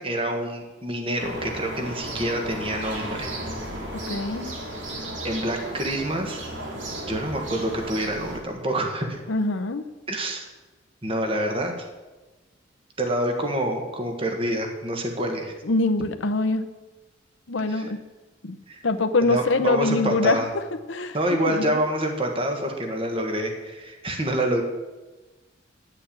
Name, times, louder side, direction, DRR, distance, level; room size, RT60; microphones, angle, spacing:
voice 1, 0.0-3.3 5.2-6.4 7.1-9.2 10.1-10.5 11.0-11.7 13.0-15.5 17.7-17.9 18.7-18.8 19.2-20.5 21.1-24.6, right 1 dB, 30° right, 3 dB, 1.5 m, -27 dB
City Park Birds, 1.2-8.4, right 1 dB, 65° right, 2.5 m, -34 dB
voice 2, 4.1-4.5 9.3-9.8 15.6-16.6 17.5-18.0 18.4-18.6 18.8-20.4 20.9-21.2 21.5-21.8, left 3 dB, 70° left, 8 dB, 0.8 m, -24 dB
10.0 x 6.8 x 8.5 m, 1.2 s
head